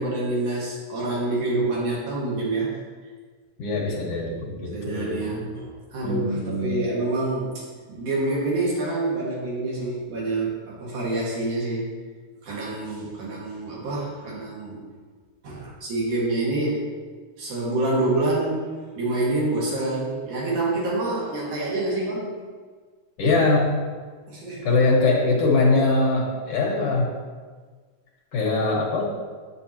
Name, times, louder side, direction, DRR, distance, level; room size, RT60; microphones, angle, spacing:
voice 1, 0.0-2.8 4.7-7.6 7.9-11.8 12.4-14.8 15.4-16.8 17.4-18.7 19.0-22.3 24.3-24.8, right 2 dB, 70° right, -6 dB, 3.3 m, -27 dB
voice 2, 3.6-5.2 6.0-6.7 23.2-23.8 24.6-27.1 28.3-29.1, left 3 dB, 55° left, -3 dB, 2.1 m, -22 dB
7.6 x 7.4 x 2.9 m, 1.5 s
omnidirectional pair, 3.6 m